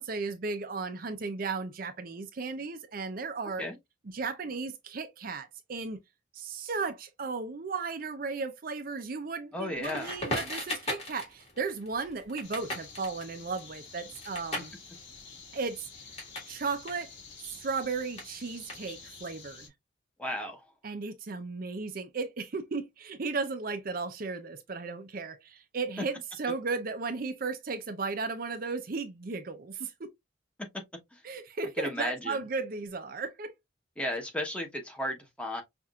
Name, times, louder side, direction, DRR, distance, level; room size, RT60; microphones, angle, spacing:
voice 1, 0.0-3.6 4.1-6.0 6.3-14.7 15.5-16.2 16.5-17.1 17.4-19.7 20.8-30.1 31.2-33.5, right 4 dB, 45° right, 0.5 m, -35 dB
voice 2, 9.5-10.2 20.2-20.7 31.1-31.2 31.8-32.4 34.0-35.6, left 1 dB, 5° left, 0.9 m, -34 dB
Crackle, 9.8-16.5 16.8-19.2, left 1 dB, 30° left, 1.7 m, -39 dB
sound 1, 12.4-19.7, left 5 dB, 60° left, 1.9 m, -49 dB
5.6 x 2.5 x 2.3 m
head